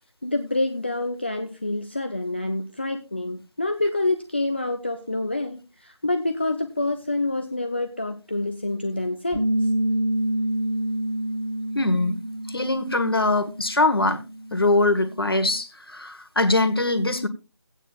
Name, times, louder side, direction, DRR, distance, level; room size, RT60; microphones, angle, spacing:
voice 1, 0.2-9.7, left 2 dB, 25° left, 0.5 m, -27 dB
Bass guitar, 9.3-13.6 13.9-15.6, right 1 dB, ahead, 6.4 m, -28 dB
voice 2, 11.7-12.2 12.5-14.2 14.5-17.3, left 2 dB, 55° left, 1.3 m, -22 dB
17.5 x 9.0 x 2.3 m
figure-of-eight pair, 165°, 15 cm